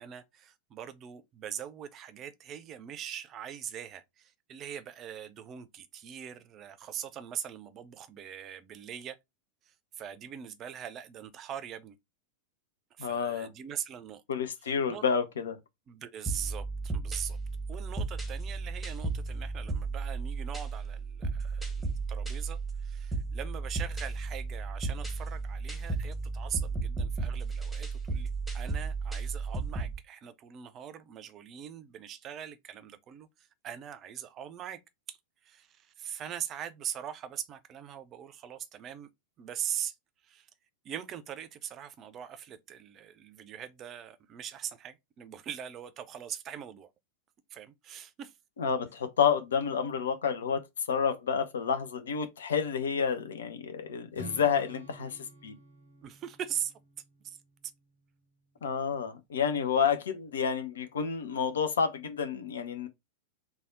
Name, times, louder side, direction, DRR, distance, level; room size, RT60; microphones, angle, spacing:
voice 1, 0.0-9.2 9.7-12.0 13.0-14.2 14.6-15.1 15.9-17.4 17.7-34.8 35.1-35.2 35.4-39.1 39.4-40.0 40.2-40.5 40.8-46.9 47.5-48.3 56.0-56.7 57.2-57.4 58.6-58.7, right 9 dB, 30° right, 0.5 m, -41 dB
voice 2, 13.0-13.5 14.3-15.6 48.6-50.6 50.9-55.5 58.6-62.9, left 7 dB, 65° left, 0.5 m, -29 dB
sound 1, 16.3-30.0, right 3 dB, ahead, 0.8 m, -34 dB
Strum, 54.1-58.3, equal, 85° left, 1.3 m, -50 dB
3.3 x 2.2 x 3.7 m
figure-of-eight pair, 90°, 0 cm